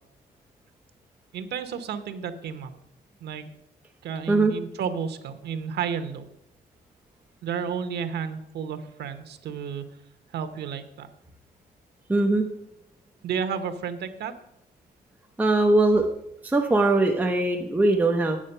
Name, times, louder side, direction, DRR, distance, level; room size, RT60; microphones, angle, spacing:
voice 1, 1.3-2.7 3.2-3.5 4.0-6.3 7.4-9.8 10.3-11.1 13.2-14.3, right 7 dB, 90° right, 10 dB, 0.9 m, -32 dB
voice 2, 12.1-12.5 15.4-16.1 16.4-18.4, right 2 dB, 10° right, 2 dB, 0.6 m, -21 dB
8.6 x 7.4 x 5.4 m, 0.80 s
wide cardioid pair, 155°, 17 cm